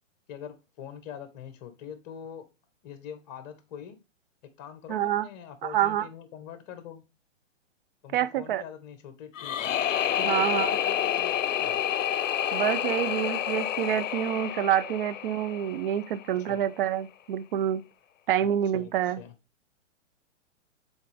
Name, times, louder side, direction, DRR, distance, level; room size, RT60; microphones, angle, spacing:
voice 1, 0.3-2.4 2.8-4.0 4.6-7.0 8.0-9.7 10.2-11.9 16.5-16.6 18.4-18.5 18.7-18.9 19.2-19.3, left 8 dB, 35° left, 1.3 m, -43 dB
voice 2, 4.9-5.3 5.6-6.1 8.1-8.6 10.2-10.8 12.5-17.8 18.3-19.2, right 11 dB, 45° right, 0.6 m, -27 dB
sound 1, 9.3-16.3, left 10 dB, 80° left, 0.6 m, -29 dB
7.0 x 4.0 x 3.4 m
hypercardioid pair, 140°, 38 cm